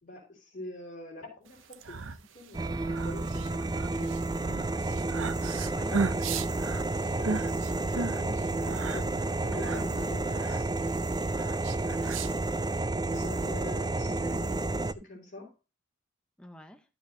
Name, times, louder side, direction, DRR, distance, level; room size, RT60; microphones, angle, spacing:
voice 1, 0.0-2.0 2.3-4.2 5.7-6.2 7.1-10.7 13.1-15.5, left 1 dB, 45° left, -3 dB, 4.2 m, -44 dB
sound 1, 1.6-12.8, right 4 dB, 80° right, 0.7 m, -37 dB
sound 2, 2.5-14.9, right 2 dB, 20° right, 0.4 m, -31 dB
voice 2, 5.4-6.0 6.8-6.9 9.6-9.8 10.5-10.6 11.9-12.8 16.4-16.8, equal, 5° left, 7 dB, 0.8 m, -49 dB
12.0 x 7.0 x 2.7 m, 0.28 s
head